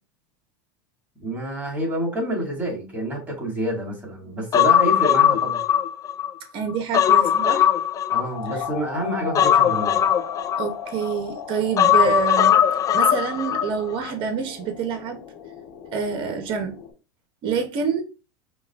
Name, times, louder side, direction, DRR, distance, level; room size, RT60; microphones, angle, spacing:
voice 1, 1.2-5.6 8.1-10.0, right 1 dB, 15° right, 2.2 m, -28 dB
Human voice, 4.5-6.3 6.7-8.7 9.4-11.1 11.8-13.7 14.0-14.1, left 9 dB, 30° left, 0.5 m, -19 dB
voice 2, 6.5-7.7 10.6-12.6 12.9-15.2 15.9-16.8 17.4-18.0, right 6 dB, 50° right, 1.1 m, -27 dB
sound 1, 8.3-16.9, left 8 dB, 80° left, 1.4 m, -36 dB
5.3 x 2.3 x 3.6 m
supercardioid pair, 125°, 12 cm